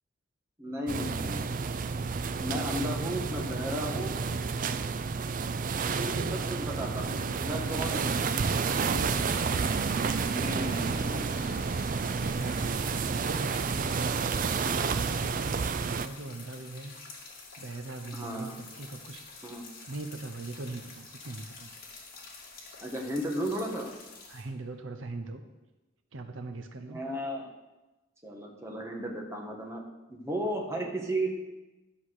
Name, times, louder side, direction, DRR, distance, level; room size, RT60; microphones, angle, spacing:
voice 1, 0.6-1.5 2.4-4.2 6.0-8.3 10.3-11.3 18.1-18.5 19.4-19.6 22.8-23.9 26.9-27.5 28.2-29.8 30.1-31.3, right 1 dB, 15° right, 0 dB, 1.5 m, -34 dB
sound 1, 0.9-16.1, right 5 dB, 40° right, 0.4 m, -30 dB
voice 2, 2.5-3.6 3.9-4.8 5.9-6.4 8.7-9.3 12.2-14.1 14.8-16.9 17.6-19.2 19.9-21.7 24.3-25.4 26.1-27.0, right 2 dB, 75° right, 7 dB, 0.8 m, -41 dB
sound 2, 7.7-24.4, left 4 dB, 50° left, 2.3 m, -48 dB
12.0 x 5.9 x 6.4 m, 1.1 s
head